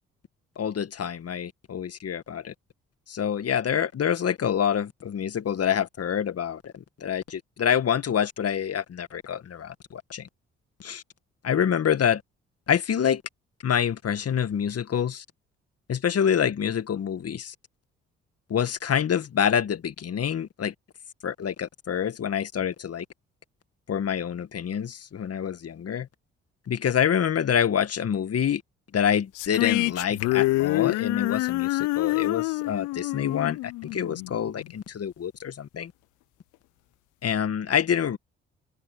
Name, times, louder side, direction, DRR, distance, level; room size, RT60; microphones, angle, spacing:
voice 1, 0.6-2.5 3.1-10.3 10.8-11.0 11.4-12.2 12.7-13.2 13.6-15.2 15.9-17.5 18.5-20.7 21.2-23.1 23.9-26.1 26.7-28.6 28.9-35.9 37.2-38.2, left 8 dB, 50° left, 1.9 m, -27 dB
sound 1, 29.4-34.7, left 21 dB, 75° left, 0.6 m, -26 dB
hypercardioid pair, 50°, 31 cm